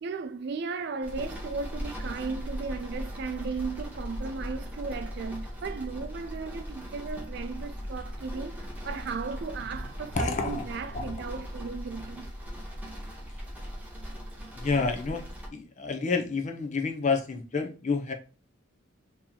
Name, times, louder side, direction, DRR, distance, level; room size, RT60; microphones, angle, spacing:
voice 1, 0.0-12.3, right 4 dB, 50° right, 0.4 m, -36 dB
sound 1, 1.0-15.5, equal, 5° right, 0.8 m, -39 dB
voice 2, 10.1-10.7 10.9-11.1 14.6-15.3 15.5-18.1, left 4 dB, 35° left, 0.5 m, -29 dB
2.9 x 2.8 x 3.8 m
head